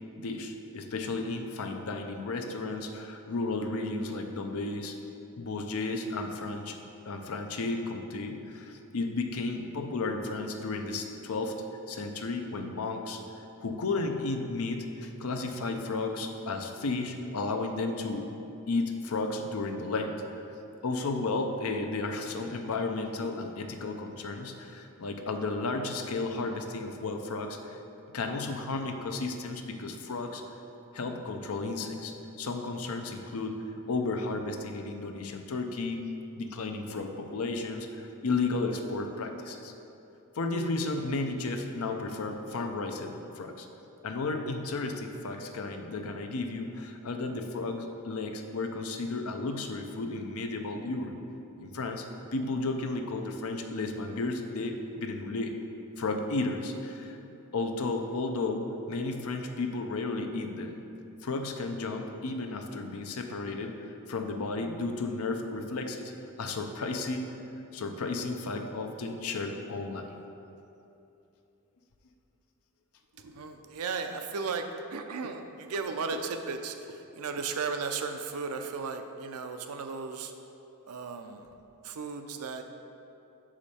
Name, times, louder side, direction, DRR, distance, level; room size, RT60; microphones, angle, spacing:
voice 1, 0.2-5.0 5.4-6.8 7.1-11.6 11.9-18.3 18.7-20.4 20.8-27.8 28.1-30.4 30.9-36.1 36.4-39.7 40.4-43.7 44.0-51.2 51.6-52.1 52.3-55.6 56.0-57.2 57.5-60.7 61.2-66.1 66.4-67.3 67.7-70.1, left 3 dB, 75° left, 5 dB, 0.6 m, -33 dB
voice 2, 73.2-74.6 74.9-80.3 80.9-81.5 81.8-82.6, right 4 dB, 80° right, 6 dB, 0.5 m, -35 dB
6.1 x 5.0 x 4.2 m, 2.8 s
head